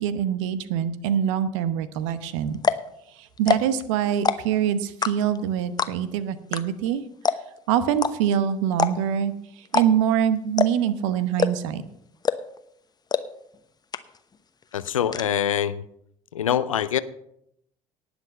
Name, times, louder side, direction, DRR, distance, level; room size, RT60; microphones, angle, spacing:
voice 1, 0.0-2.6 3.1-7.0 7.7-11.8, right 9 dB, 70° right, 14 dB, 0.9 m, -24 dB
sound 1, 2.1-2.2 2.5-2.9 3.4-3.8 4.1-4.6 5.0-5.4 5.8-6.1 6.5-6.6 6.9-7.0 7.2-7.6 8.0-8.1 8.7-9.2 9.7-10.1 10.6-10.9 11.4-11.8 12.3-12.6 13.1-13.2 13.5-13.6 13.9-14.4 14.6-15.2, left 5 dB, 25° left, 0.9 m, -23 dB
voice 2, 14.7-15.8 16.3-17.0, left 9 dB, 85° left, 16 dB, 0.5 m, -24 dB
18.5 x 6.1 x 5.5 m, 0.76 s
figure-of-eight pair, 60°, 17 cm